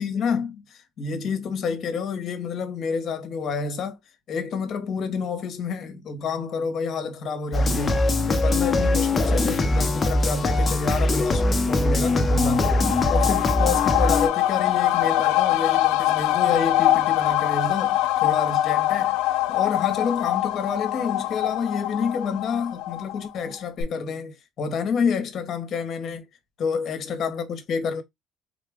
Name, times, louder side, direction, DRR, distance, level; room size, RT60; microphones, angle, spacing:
voice 1, 0.0-4.0 4.3-12.8 13.1-19.2 19.5-26.2 26.6-28.0, left 5 dB, 45° left, 1.1 m, -29 dB
sound 1, 7.5-14.3, left 2 dB, 20° left, 0.7 m, -22 dB
sound 2, 12.0-23.5 23.8-23.9, left 15 dB, 90° left, 0.6 m, -23 dB
3.8 x 2.5 x 3.5 m
cardioid pair, 135°, 0 cm